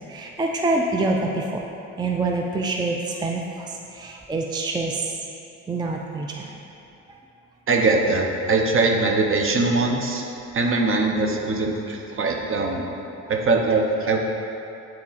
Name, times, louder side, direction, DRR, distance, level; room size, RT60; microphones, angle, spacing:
voice 1, 0.1-1.7 2.0-5.2 5.7-6.5, right 2 dB, 15° right, 1 dB, 0.4 m, -26 dB
voice 2, 7.7-10.3 10.5-12.9 13.3-14.2, right 3 dB, 45° right, 1 dB, 0.8 m, -21 dB
7.3 x 4.2 x 4.1 m, 2.8 s
cardioid pair, 90°, 30 cm